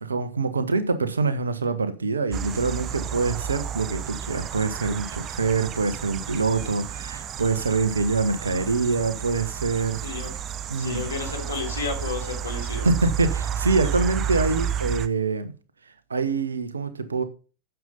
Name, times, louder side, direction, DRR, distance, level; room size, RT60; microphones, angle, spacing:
voice 1, 0.0-10.0 10.7-11.1 12.8-15.5 16.1-17.2, right 4 dB, 75° right, 1.1 m, -25 dB
sound 1, 2.3-15.1, right 9 dB, 30° right, 0.6 m, -31 dB
voice 2, 10.8-12.9, left 4 dB, 75° left, 3.9 m, -32 dB
9.4 x 7.0 x 5.2 m
figure-of-eight pair, 90°, 0 cm